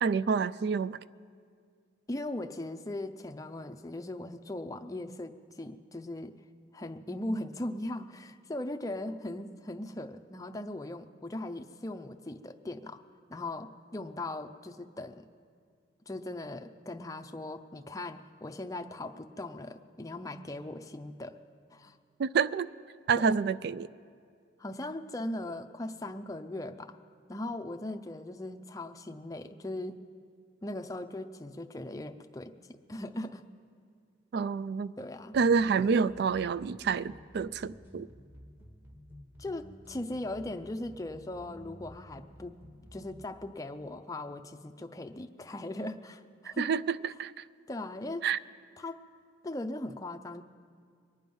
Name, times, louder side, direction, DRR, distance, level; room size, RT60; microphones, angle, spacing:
voice 1, 0.0-1.0 22.2-22.7 23.1-23.9 34.3-34.9 35.3-38.1 46.4-47.4 48.2-48.4, right 5 dB, 55° right, 17 dB, 0.3 m, -28 dB
voice 2, 2.1-6.3 6.7-13.0 13.3-15.3 16.1-21.4 21.7-22.0 23.2-23.3 24.6-27.0 27.3-30.0 30.6-32.5 32.9-33.5 35.0-35.4 39.4-42.6 42.9-46.7 47.7-48.3 48.8-49.0 49.4-50.4, left 1 dB, 15° left, 6 dB, 0.5 m, -39 dB
sound 1, 35.3-43.4, equal, 10° right, 1.2 m, -52 dB
23.5 x 9.2 x 5.4 m, 2.2 s
head